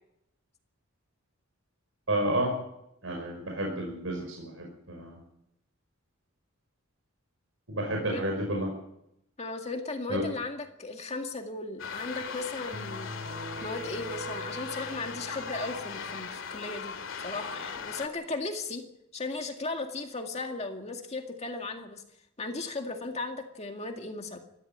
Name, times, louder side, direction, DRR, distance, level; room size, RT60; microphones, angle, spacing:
voice 1, 2.1-2.5 3.0-5.2 7.7-8.7 10.1-10.2, right 1 dB, 80° right, 1 dB, 5.5 m, -31 dB
voice 2, 9.4-13.1 13.6-18.8 19.1-22.0 22.4-24.4, left 3 dB, 35° left, 3 dB, 2.1 m, -36 dB
sound 1, 11.8-18.1, left 5 dB, 75° left, 2.5 m, -38 dB
sound 2, 12.7-16.3, right 1 dB, 45° right, 2.9 m, -43 dB
21.5 x 14.5 x 8.9 m, 0.81 s
head